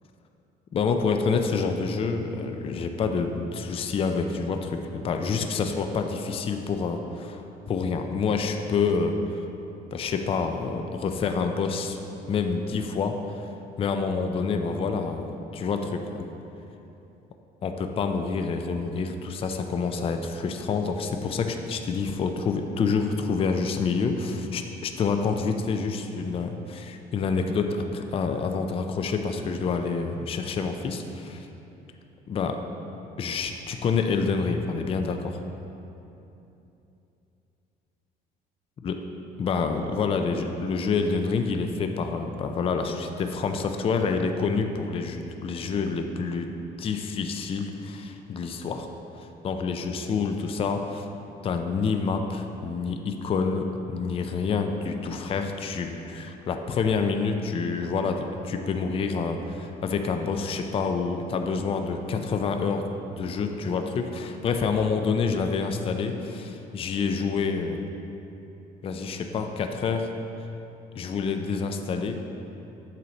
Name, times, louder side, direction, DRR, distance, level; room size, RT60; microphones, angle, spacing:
voice 1, 0.7-9.5 9.9-12.0 12.3-13.5 13.8-16.3 17.6-31.5 32.3-32.6 33.2-35.4 38.8-39.0 39.4-46.5 46.8-48.9 49.2-51.1 51.4-67.8 68.8-70.1 71.0-72.2, left 5 dB, 35° left, 5 dB, 0.4 m, -27 dB
7.8 x 4.2 x 4.1 m, 2.9 s
cardioid pair, 110°, 17 cm